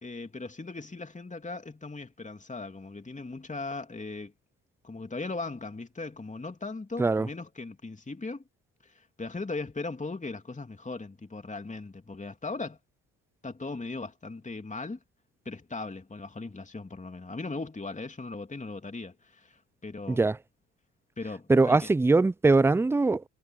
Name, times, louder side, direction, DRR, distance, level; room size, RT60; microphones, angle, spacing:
voice 1, 0.0-4.3 4.8-8.4 8.8-12.8 13.4-15.0 15.4-20.3 21.2-21.9, left 3 dB, 20° left, 2.9 m, -38 dB
voice 2, 21.5-23.2, right 3 dB, 5° right, 0.4 m, -22 dB
hypercardioid pair, 50°, 38 cm